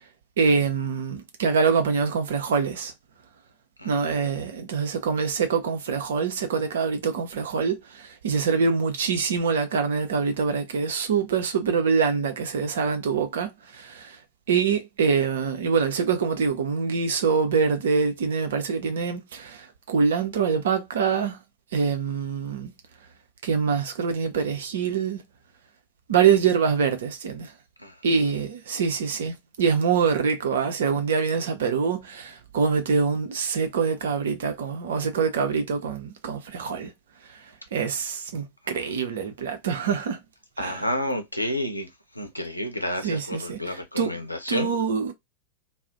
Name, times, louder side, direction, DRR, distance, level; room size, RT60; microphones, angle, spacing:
voice 1, 0.4-2.9 3.9-7.8 8.2-13.5 14.5-19.2 19.9-21.3 21.7-22.7 23.5-25.2 26.1-27.5 28.0-32.0 32.5-36.9 37.7-40.2 40.6-40.7 43.0-43.6 44.0-44.1 44.5-45.1, right 5 dB, 60° right, 0.6 m, -24 dB
voice 2, 3.8-4.4 27.8-28.4 38.7-38.8 40.6-41.9 42.2-44.7, left 1 dB, 85° left, 0.6 m, -31 dB
2.4 x 2.0 x 3.7 m
figure-of-eight pair, 90°, 0 cm